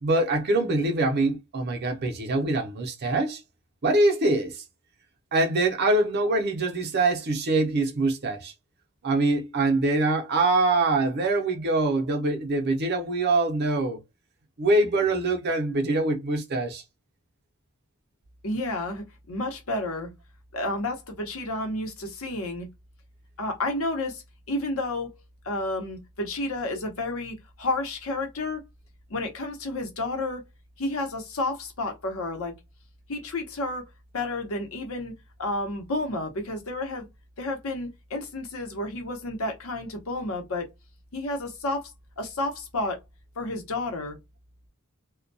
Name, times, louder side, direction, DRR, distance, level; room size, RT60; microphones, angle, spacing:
voice 1, 0.0-3.4 3.8-4.6 5.3-8.5 9.0-14.0 14.6-16.8, right 2 dB, 50° right, 0.6 m, -24 dB
voice 2, 18.4-20.1 20.5-22.7 23.4-25.1 25.4-28.6 29.1-30.4 30.8-32.6 33.1-33.9 34.1-35.1 35.4-37.1 37.4-40.7 41.1-43.0 43.4-44.2, left 2 dB, 70° left, 0.8 m, -31 dB
2.2 x 2.2 x 2.5 m
head